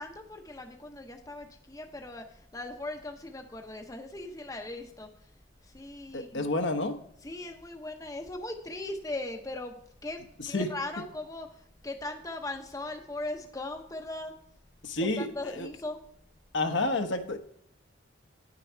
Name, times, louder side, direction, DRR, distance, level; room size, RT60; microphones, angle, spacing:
voice 1, 0.0-5.1 5.6-6.5 7.2-10.2 10.5-14.3 15.0-16.0, left 2 dB, 15° left, 4 dB, 0.8 m, -39 dB
voice 2, 6.1-7.0 10.5-10.7 14.8-15.3 15.5-15.7 16.5-17.4, left 2 dB, 65° left, 6 dB, 1.0 m, -29 dB
9.8 x 6.5 x 4.5 m, 0.72 s
head